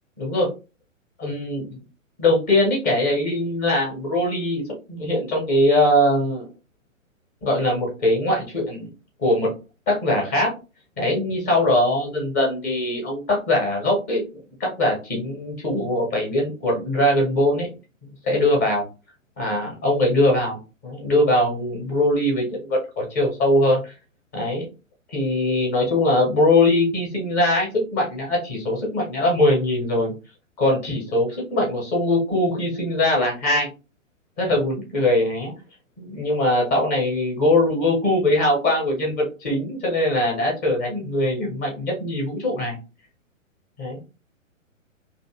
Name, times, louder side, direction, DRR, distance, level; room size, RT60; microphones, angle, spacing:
voice 1, 0.2-0.5 1.2-1.8 2.2-6.5 7.4-8.9 9.2-9.5 9.9-10.5 11.0-14.2 14.6-17.7 18.2-18.8 19.4-23.9 24.3-24.6 25.1-30.1 30.6-33.7 34.4-35.5 36.0-42.8 43.8-44.0, left 1 dB, 15° left, -1 dB, 0.5 m, -21 dB
2.5 x 2.4 x 2.4 m, 0.30 s
figure-of-eight pair, 120°, 40 cm